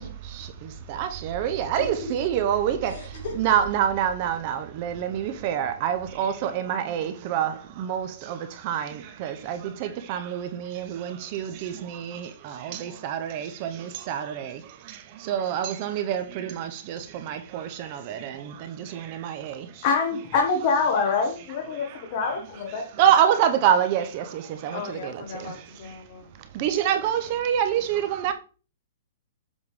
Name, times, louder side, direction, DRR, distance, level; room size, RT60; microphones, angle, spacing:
voice 1, 0.0-19.8 21.7-22.2 22.7-25.6 26.4-28.3, right 9 dB, 30° right, 0.5 m, -27 dB
voice 2, 2.8-3.5 24.7-26.3, left 4 dB, 45° left, 3.5 m, -37 dB
voice 3, 19.8-22.8, left 4 dB, 30° left, 1.1 m, -25 dB
7.3 x 3.5 x 4.7 m
hypercardioid pair, 175°, 0 cm